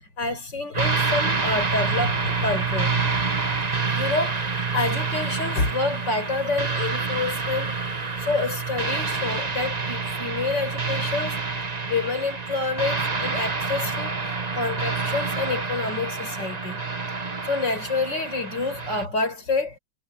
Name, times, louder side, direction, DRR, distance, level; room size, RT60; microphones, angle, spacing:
voice 1, 0.2-2.9 3.9-7.8 8.2-11.4 11.9-14.1 14.5-16.8 17.4-19.8, left 3 dB, 75° left, 5.8 m, -28 dB
sound 1, 0.7-19.1, right 4 dB, 25° right, 1.2 m, -27 dB
omnidirectional pair, 1.9 m